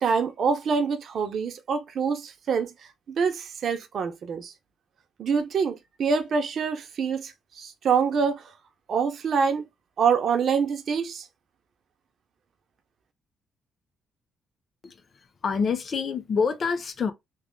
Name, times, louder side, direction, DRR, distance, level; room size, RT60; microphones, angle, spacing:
voice 1, 0.0-2.7 3.1-4.5 5.2-8.4 8.9-9.6 10.0-11.3, right 6 dB, 60° right, 0.8 m, -25 dB
voice 2, 15.4-17.1, left 5 dB, 45° left, 0.7 m, -26 dB
3.3 x 2.3 x 3.7 m
cardioid pair, 90°, 0 cm